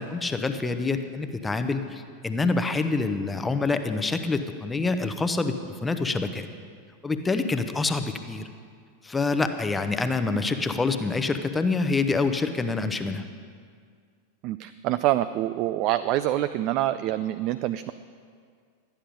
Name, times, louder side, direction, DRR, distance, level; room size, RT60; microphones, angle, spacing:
voice 1, 0.0-6.5 7.0-8.5 9.0-13.2, left 3 dB, 10° left, 8 dB, 0.8 m, -26 dB
voice 2, 14.4-17.9, right 14 dB, 40° right, 12 dB, 0.3 m, -26 dB
12.5 x 10.0 x 5.1 m, 2.1 s
figure-of-eight pair, 90°, 0 cm